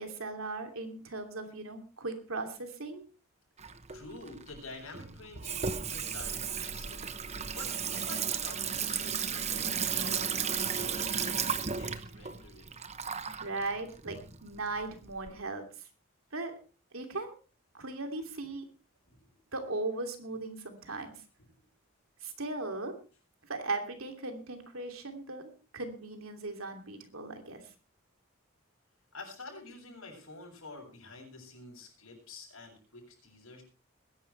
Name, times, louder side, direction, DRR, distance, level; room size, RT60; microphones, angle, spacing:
voice 1, 0.0-3.0 7.0-7.1 13.4-15.7 16.3-16.6 16.9-17.3 17.7-18.6 19.5-21.2 22.2-22.9 23.4-27.6, right 3 dB, 85° right, 5 dB, 2.9 m, -38 dB
Water tap faucet / Sink (filling or washing), 3.6-15.3, right 7 dB, 35° right, 0.9 m, -34 dB
voice 2, 3.9-7.1 7.5-12.7 19.1-19.4 21.6-21.7 29.1-33.6, left 2 dB, 85° left, 0 dB, 7.7 m, -48 dB
21.5 x 11.0 x 3.3 m, 0.35 s
head